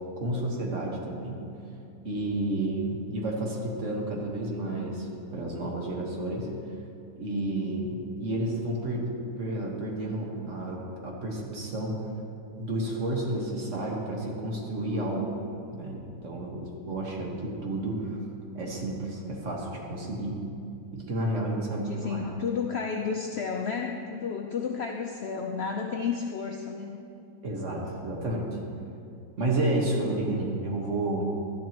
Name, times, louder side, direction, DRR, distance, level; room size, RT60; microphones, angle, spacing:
voice 1, 0.2-1.4 2.0-6.5 7.1-12.0 12.6-15.3 15.7-18.2 18.5-20.4 20.9-22.2 27.4-28.6 29.4-31.3, right 1 dB, 45° right, -1 dB, 1.6 m, -31 dB
voice 2, 21.6-27.1, left 6 dB, 85° left, 2 dB, 0.5 m, -32 dB
13.0 x 10.5 x 2.9 m, 2.5 s
omnidirectional pair, 1.9 m